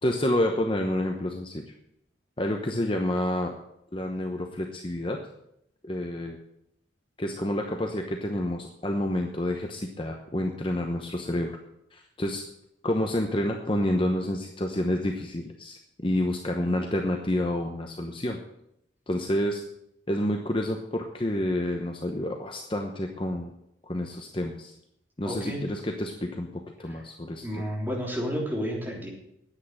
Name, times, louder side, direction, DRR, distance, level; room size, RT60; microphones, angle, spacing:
voice 1, 0.0-1.6 2.4-3.5 3.9-5.2 5.8-6.4 7.2-11.5 11.9-12.4 12.8-18.4 19.1-19.6 20.1-23.5 23.8-24.7 25.2-27.6, left 1 dB, 25° left, 3 dB, 0.9 m, -29 dB
voice 2, 25.2-25.7 26.8-27.0 27.4-29.1, equal, 10° right, -3 dB, 3.4 m, -31 dB
10.0 x 8.5 x 8.6 m, 0.78 s
head